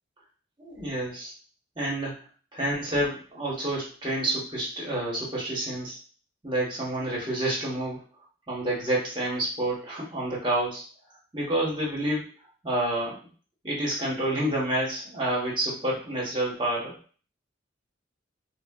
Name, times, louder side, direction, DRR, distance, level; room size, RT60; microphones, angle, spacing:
voice 1, 0.6-1.3 1.8-2.2 2.5-6.0 6.4-8.0 8.5-10.8 11.3-12.3 12.6-13.3 13.6-17.0, right 1 dB, 25° right, -4 dB, 0.9 m, -28 dB
3.8 x 2.0 x 2.2 m, 0.39 s
head